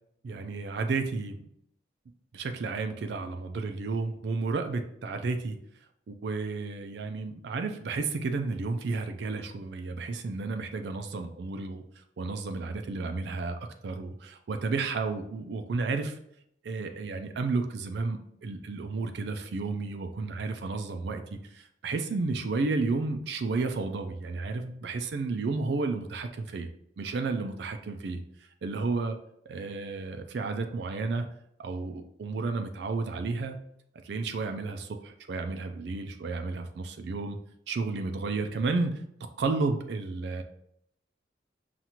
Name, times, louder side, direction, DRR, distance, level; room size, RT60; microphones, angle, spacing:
voice 1, 0.2-1.5 2.3-5.6 6.1-11.8 12.2-16.2 16.6-26.7 27.0-28.2 28.6-29.2 29.5-31.3 31.6-33.6 34.0-37.4 37.7-39.0 39.4-40.4, right 3 dB, 65° right, 6 dB, 0.4 m, -32 dB
5.6 x 2.5 x 2.9 m, 0.73 s
head